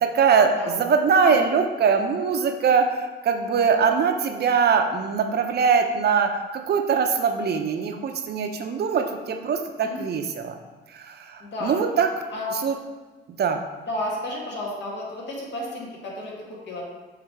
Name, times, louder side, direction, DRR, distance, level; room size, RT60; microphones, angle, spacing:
voice 1, 0.0-10.6 10.9-12.1 12.6-12.8 13.3-13.6, right 6 dB, 55° right, 6 dB, 0.7 m, -22 dB
voice 2, 3.6-4.0 9.8-10.0 11.4-11.8 12.3-12.6 13.8-16.8, left 1 dB, 60° left, -4 dB, 2.0 m, -32 dB
6.7 x 3.3 x 4.6 m, 1.3 s
cardioid pair, 90°, 20 cm